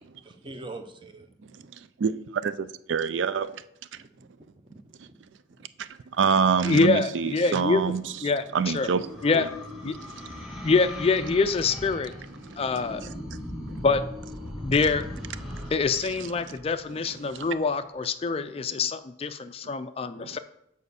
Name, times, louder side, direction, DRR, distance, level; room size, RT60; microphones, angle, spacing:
voice 1, 0.2-1.7 3.9-4.0 4.3-5.7, right 2 dB, 25° right, 7 dB, 0.7 m, -45 dB
voice 2, 2.0-3.6 5.8-5.9 6.2-8.0 8.5-9.1 9.3-9.4 15.5-15.6 16.5-16.6 17.3-17.5 19.6-19.7 20.2-20.4, right 6 dB, 75° right, 14 dB, 0.4 m, -26 dB
voice 3, 6.6-7.8 8.2-8.9 9.2-9.5 9.8-10.0 10.6-12.1 12.6-13.0 13.8-14.0 14.6-15.0 15.7-20.4, left 4 dB, 30° left, 11 dB, 0.3 m, -25 dB
sound 1, 8.0-17.4, left 1 dB, 5° right, 1.2 m, -39 dB
6.6 x 4.9 x 6.9 m, 0.77 s
head